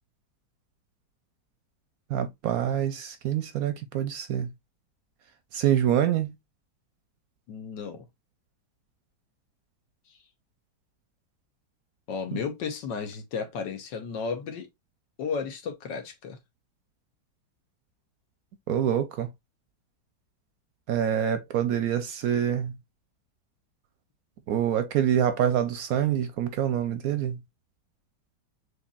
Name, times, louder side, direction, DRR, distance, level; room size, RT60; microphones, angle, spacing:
voice 1, 2.1-4.5 5.5-6.3 12.3-12.4 18.7-19.3 20.9-22.7 24.5-27.4, right 10 dB, 70° right, 0.9 m, -26 dB
voice 2, 7.5-8.1 12.1-14.7 15.2-16.4, left 5 dB, 85° left, 1.7 m, -33 dB
6.4 x 2.7 x 2.3 m
omnidirectional pair, 1.9 m